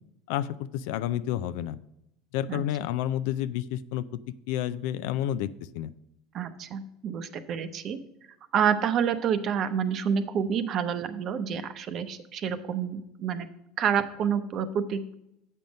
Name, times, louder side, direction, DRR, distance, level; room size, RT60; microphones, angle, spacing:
voice 1, 0.3-1.8 2.3-4.0 4.5-5.9, left 12 dB, 75° left, 15 dB, 0.4 m, -30 dB
voice 2, 6.3-8.0 8.5-13.5 13.8-15.1, right 7 dB, 45° right, 12 dB, 0.7 m, -28 dB
7.6 x 5.5 x 5.2 m, 0.85 s
supercardioid pair, 105°, 0 cm